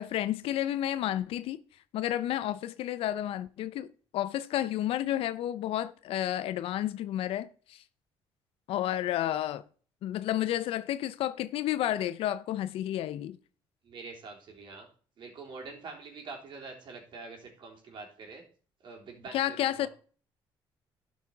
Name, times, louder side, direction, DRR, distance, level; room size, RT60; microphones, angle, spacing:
voice 1, 0.0-1.6 1.9-7.8 8.7-9.6 10.0-13.4 19.3-19.9, left 12 dB, 75° left, 0.5 m, -31 dB
voice 2, 13.8-14.9 15.2-18.4 18.8-19.9, right 4 dB, 55° right, 3.5 m, -45 dB
12.0 x 5.7 x 4.6 m
cardioid pair, 110°, 10 cm